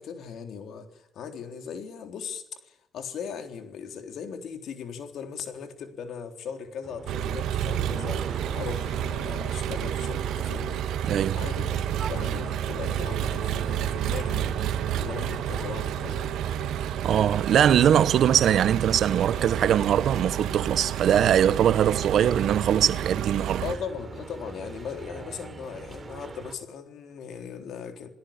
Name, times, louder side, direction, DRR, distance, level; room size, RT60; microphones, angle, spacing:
voice 1, 0.0-10.9 11.3-14.6 15.0-16.4 23.6-28.1, left 6 dB, 70° left, 3.7 m, -38 dB
sound 1, 6.8-26.5, right 4 dB, 30° right, 3.4 m, -41 dB
Engine, 7.1-23.8, right 10 dB, 85° right, 1.5 m, -30 dB
voice 2, 11.0-11.4 17.0-23.6, right 9 dB, 70° right, 1.0 m, -22 dB
28.0 x 17.0 x 8.8 m
cardioid pair, 90°, 0 cm